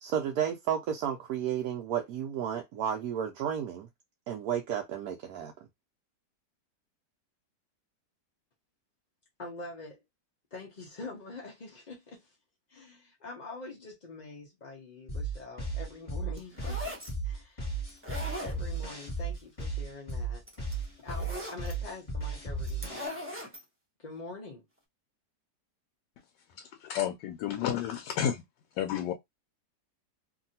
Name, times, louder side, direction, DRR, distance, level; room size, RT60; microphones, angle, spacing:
voice 1, 0.0-3.9 4.3-5.5, right 9 dB, 70° right, 1.0 m, -32 dB
voice 2, 9.4-10.0 10.5-12.4 12.7-16.9 17.2-17.7 18.4-20.4 21.0-23.1 24.0-24.6, left 3 dB, 60° left, 0.4 m, -45 dB
sound 1, 15.1-23.1, right 3 dB, 20° left, 1.2 m, -35 dB
sound 2, 16.4-17.1 17.9-18.9 20.1-20.2 20.5-21.7 22.6-23.6, left 1 dB, 15° right, 0.5 m, -40 dB
voice 3, 26.8-28.4 28.8-29.1, left 10 dB, 90° left, 1.2 m, -31 dB
2.8 x 2.6 x 2.7 m
omnidirectional pair, 1.8 m